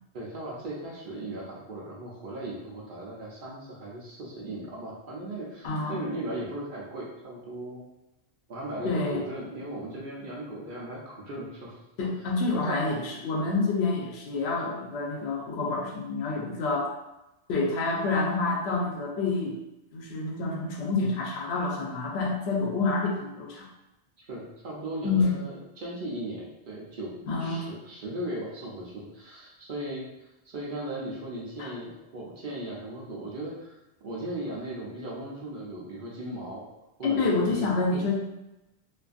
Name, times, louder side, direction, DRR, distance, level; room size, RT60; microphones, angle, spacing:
voice 1, 0.1-7.8 8.5-11.8 12.5-12.8 24.2-27.1 27.4-33.8 34.0-36.6 37.0-37.6, right 1 dB, 60° right, -4 dB, 0.7 m, -37 dB
voice 2, 5.6-6.0 8.8-9.2 12.0-16.9 17.5-19.6 19.9-23.7 25.0-25.3 27.3-27.7 31.6-31.7 37.0-38.2, left 3 dB, 80° left, -1 dB, 0.9 m, -28 dB
2.5 x 2.5 x 2.4 m, 0.93 s
omnidirectional pair, 1.1 m